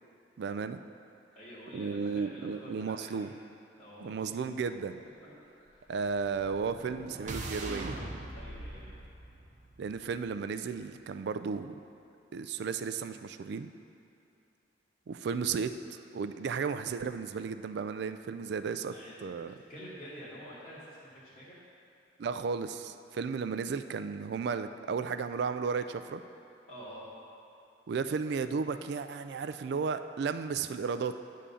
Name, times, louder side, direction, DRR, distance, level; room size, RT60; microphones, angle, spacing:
voice 1, 0.4-0.8 1.7-3.3 4.0-5.0 5.9-7.9 9.8-11.8 12.3-13.7 15.1-18.9 19.2-19.6 22.2-26.2 27.9-31.2, right 5 dB, 65° right, 10 dB, 0.3 m, -34 dB
voice 2, 1.3-3.3 3.8-4.3 5.2-5.3 5.6-5.9 8.3-9.0 18.9-19.3 19.7-21.6 26.7-27.1, equal, 40° left, -12 dB, 1.6 m, -48 dB
sound 1, 6.3-10.3, right 2 dB, 45° right, 0.8 m, -42 dB
9.9 x 3.8 x 6.9 m, 2.8 s
head